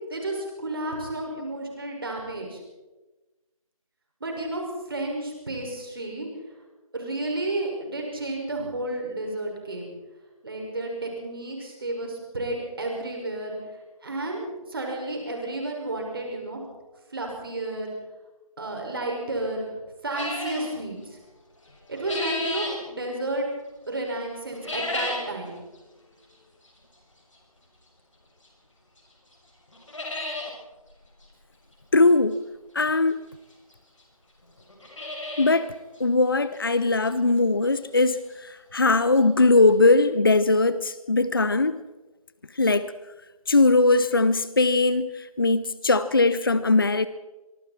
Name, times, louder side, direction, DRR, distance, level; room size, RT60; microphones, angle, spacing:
voice 1, 0.1-2.6 4.2-6.3 6.9-9.9 10.4-13.6 14.0-17.9 18.6-19.7 20.0-21.2 21.9-23.5 23.9-25.6, right 2 dB, 40° right, 1 dB, 5.9 m, -32 dB
sound 1, 20.1-20.7 21.7-22.8 24.5-25.3 25.7-25.8 26.7-26.8 28.4-28.5 29.0-29.1 29.3-29.4 29.7-30.5 30.9-31.0 31.2-31.3 32.8-32.9 33.7-33.8 34.0-34.1 34.6-35.6 36.0-36.1 36.6-36.7 37.1-37.2 38.9-39.0 39.2-39.3 39.7-39.8, left 2 dB, 55° left, 6.5 m, -32 dB
voice 2, 31.9-32.4 32.7-33.2 35.4-35.7 36.0-41.8 42.6-42.9 43.5-47.1, left 3 dB, 40° left, 15 dB, 0.7 m, -20 dB
25.5 x 24.0 x 4.4 m, 1.1 s
figure-of-eight pair, 165°, 19 cm